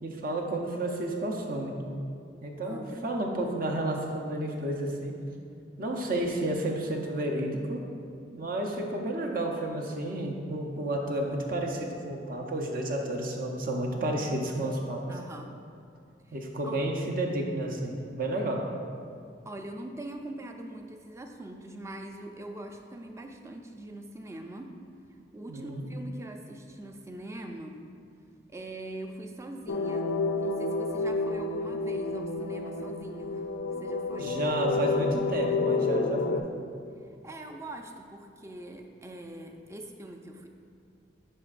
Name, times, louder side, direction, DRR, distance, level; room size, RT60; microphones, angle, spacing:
voice 1, 0.0-1.8 2.4-5.2 5.8-7.8 8.3-15.1 16.3-18.7 25.5-25.8 34.2-36.5, right 1 dB, 50° right, 1 dB, 0.7 m, -31 dB
voice 2, 2.6-3.1 5.9-6.3 15.1-15.6 16.6-17.1 19.5-24.8 25.3-27.9 28.5-34.4 37.0-40.5, right 1 dB, 15° right, 4 dB, 0.4 m, -43 dB
sound 1, 29.7-36.4, left 3 dB, 75° left, 0.4 m, -30 dB
11.0 x 4.4 x 2.5 m, 2.3 s
head